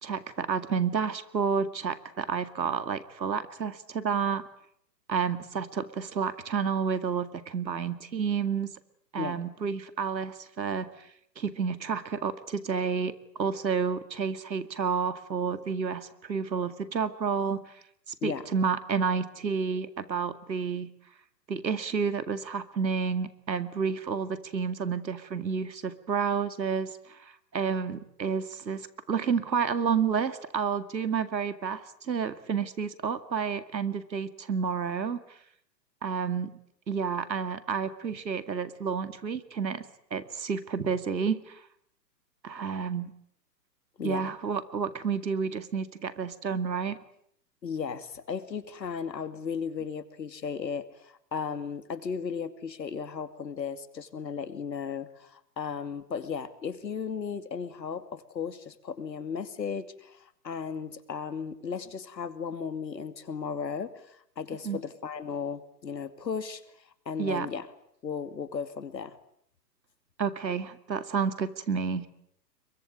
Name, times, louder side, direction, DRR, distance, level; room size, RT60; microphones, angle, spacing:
voice 1, 0.0-4.4 5.1-8.7 9.1-11.1 11.4-17.8 18.2-20.9 21.5-35.4 36.0-36.5 36.9-39.8 40.1-41.6 42.4-43.1 44.0-47.0 64.6-64.8 67.2-67.5 70.2-72.1, right 6 dB, 90° right, 12 dB, 2.2 m, -30 dB
voice 2, 44.0-44.3 47.6-66.6 67.1-67.7 68.0-69.2, left 6 dB, 85° left, 11 dB, 2.7 m, -35 dB
26.5 x 23.0 x 8.8 m, 0.71 s
hypercardioid pair, 130°, 50 cm